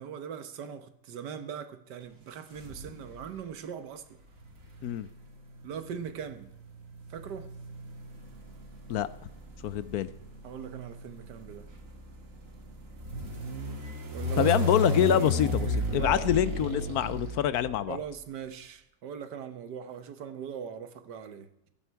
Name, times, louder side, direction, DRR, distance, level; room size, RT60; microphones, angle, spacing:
voice 1, 0.0-4.2 5.6-6.5 7.1-7.5 10.4-11.7 14.1-14.5 15.1-15.3 16.0-16.3 17.9-21.5, right 7 dB, 80° right, 1.7 m, -40 dB
sound 1, 2.6-3.3 4.3-18.0, equal, 50° right, 2.4 m, -34 dB
voice 2, 9.6-10.1 14.4-15.7 15.9-18.0, left 11 dB, 70° left, 1.1 m, -26 dB
15.5 x 11.5 x 4.6 m
omnidirectional pair, 1.8 m